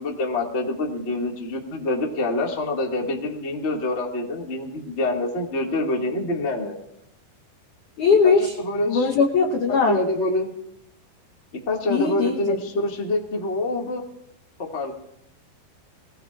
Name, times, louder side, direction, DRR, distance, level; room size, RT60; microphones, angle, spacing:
voice 1, 0.0-6.7 8.2-9.1 9.7-10.5 11.7-14.0 14.6-14.9, left 2 dB, 45° left, -1 dB, 0.9 m, -26 dB
voice 2, 8.0-8.5 8.9-10.0 11.9-12.5, left 5 dB, 80° left, 2 dB, 1.8 m, -20 dB
23.5 x 17.5 x 2.5 m, 0.78 s
omnidirectional pair, 5.2 m